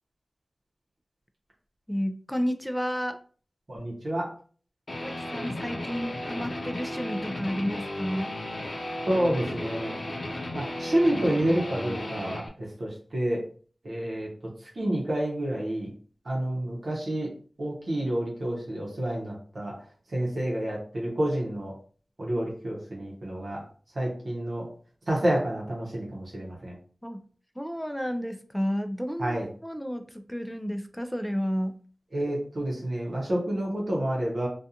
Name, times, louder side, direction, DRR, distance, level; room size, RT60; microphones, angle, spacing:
voice 1, 1.9-3.2 5.0-8.3 27.0-27.2 27.6-31.8, equal, 5° left, 7 dB, 0.3 m, -31 dB
voice 2, 3.7-4.3 9.1-10.1 10.5-13.4 13.8-14.3 14.8-15.9 16.3-17.3 17.6-19.7 20.1-21.7 22.2-23.6 23.9-24.7 25.1-26.7 29.2-29.5 32.1-34.5, right 1 dB, 70° right, -3 dB, 0.7 m, -29 dB
Guitar, 4.9-12.5, left 1 dB, 65° left, 0.6 m, -34 dB
2.4 x 2.2 x 2.7 m, 0.43 s
wide cardioid pair, 45°, 0 cm